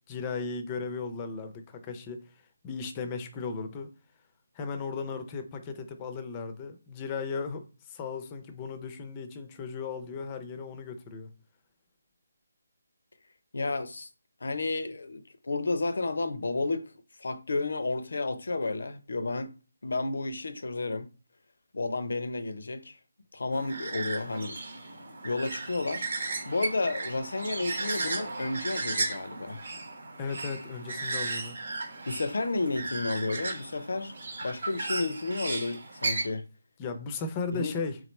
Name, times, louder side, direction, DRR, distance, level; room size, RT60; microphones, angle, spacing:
voice 1, 0.1-3.9 4.5-11.3 30.2-31.6 36.8-38.0, left 4 dB, 20° left, 0.5 m, -36 dB
voice 2, 13.5-14.1 14.4-16.9 17.2-19.5 19.8-21.1 21.7-23.0 23.3-24.6 25.2-26.1 26.4-29.6 32.1-36.4 37.5-37.7, left 3 dB, 70° left, 0.5 m, -31 dB
sound 1, 23.5-36.3, right 3 dB, 65° right, 0.9 m, -35 dB
3.7 x 3.1 x 3.2 m
figure-of-eight pair, 160°, 0 cm